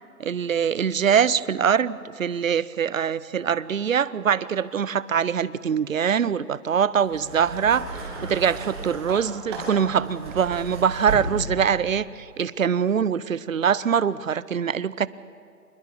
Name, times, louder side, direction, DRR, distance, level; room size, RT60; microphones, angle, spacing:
voice 1, 0.2-15.1, right 7 dB, 55° right, 19 dB, 0.7 m, -23 dB
sound 1, 7.0-11.8 12.8-12.9, right 2 dB, 15° right, 2.6 m, -34 dB
27.0 x 21.5 x 7.1 m, 2.4 s
hypercardioid pair, 170°, 47 cm